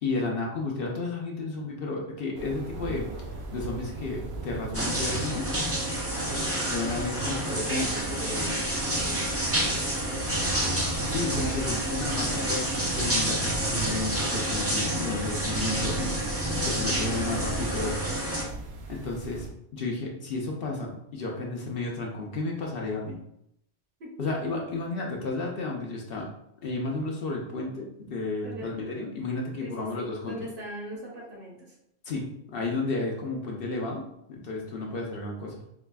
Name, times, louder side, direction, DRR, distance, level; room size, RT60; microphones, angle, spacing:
voice 1, 0.0-3.2 3.5-5.5 6.7-7.9 11.0-16.1 16.6-18.0 18.9-23.2 24.2-26.3 26.6-30.4 32.1-34.0 34.3-35.6, left 3 dB, 60° left, -1 dB, 0.8 m, -32 dB
sound 1, 2.3-19.5, right 3 dB, 70° right, 0.8 m, -38 dB
sound 2, 4.7-18.4, right 1 dB, 20° right, 0.4 m, -29 dB
voice 2, 6.2-6.7 7.1-10.7 16.7-17.1 24.0-24.3 28.4-28.7 29.6-31.7, equal, 55° right, -3 dB, 1.1 m, -41 dB
4.7 x 2.4 x 2.2 m, 0.76 s
omnidirectional pair, 1.1 m